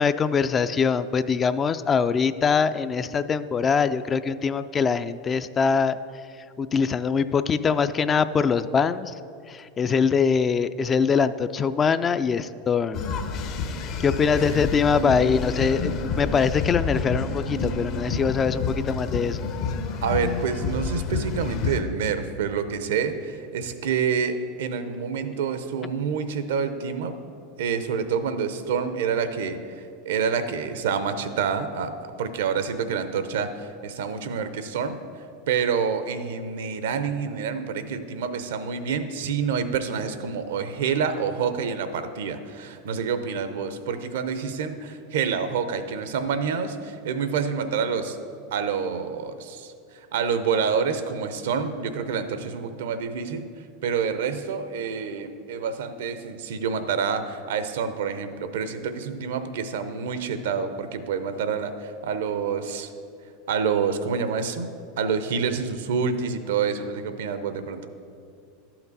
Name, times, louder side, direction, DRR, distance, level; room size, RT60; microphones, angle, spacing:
voice 1, 0.0-6.0 6.2-9.2 9.5-13.1 14.0-19.4, left 6 dB, 25° left, 13 dB, 0.3 m, -23 dB
sound 1, 12.9-21.8, left 4 dB, 50° left, 0.7 m, -29 dB
voice 2, 14.0-14.6 20.0-27.2 27.6-31.9 32.2-35.0 35.5-48.2 48.5-53.5 53.8-62.9 63.5-64.7 65.0-67.9, right 6 dB, 75° right, 10 dB, 0.6 m, -27 dB
11.5 x 5.9 x 4.0 m, 2.4 s
hypercardioid pair, 105°, 0 cm